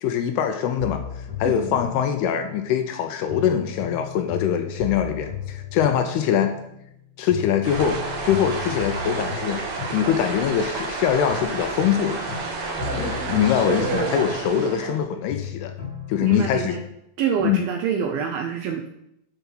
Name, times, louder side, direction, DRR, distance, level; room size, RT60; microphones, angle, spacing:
voice 1, 0.0-1.0 1.4-6.5 7.2-9.6 9.9-12.2 12.9-15.7 16.1-16.8 17.4-17.6, left 9 dB, 80° left, 7 dB, 2.5 m, -23 dB
sound 1, 0.8-2.9 3.3-7.0 7.3-10.9 11.3-15.0 15.3-16.9, left 7 dB, 45° left, 1.4 m, -35 dB
voice 2, 1.4-1.8 14.6-14.9 16.2-16.8 17.2-18.9, right 7 dB, 80° right, 4 dB, 2.1 m, -27 dB
sound 2, 7.6-15.0, right 3 dB, 60° right, 3.2 m, -30 dB
11.5 x 4.7 x 5.9 m, 0.79 s
omnidirectional pair, 5.0 m